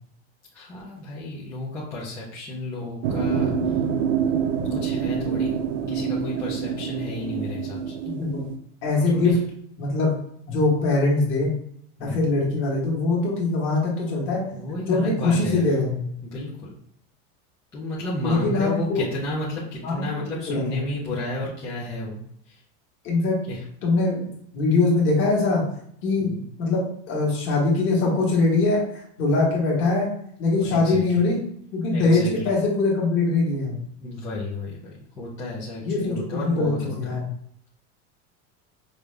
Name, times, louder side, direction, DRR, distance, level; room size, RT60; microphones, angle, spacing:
voice 1, 0.5-3.5 4.2-4.3 4.7-5.6 5.9-7.9 9.1-9.2 12.0-12.3 14.5-15.7 16.2-16.5 17.7-22.2 22.5-22.6 23.5-23.6 26.2-26.5 30.6-31.2 31.9-32.5 34.0-37.2, left 2 dB, 10° left, -9 dB, 0.3 m, -32 dB
sound 1, 3.0-8.6, right 7 dB, 85° right, 0.6 m, -26 dB
voice 2, 8.0-8.4 8.8-9.4 9.8-10.1 10.5-11.5 12.0-14.4 14.9-16.0 18.2-19.0 19.8-20.8 23.0-23.4 23.8-25.7 26.0-26.3 26.6-30.1 30.4-31.4 31.7-33.8 35.8-37.3, left 3 dB, 35° left, -3 dB, 1.3 m, -22 dB
5.2 x 2.3 x 3.1 m, 0.67 s
supercardioid pair, 175°, 36 cm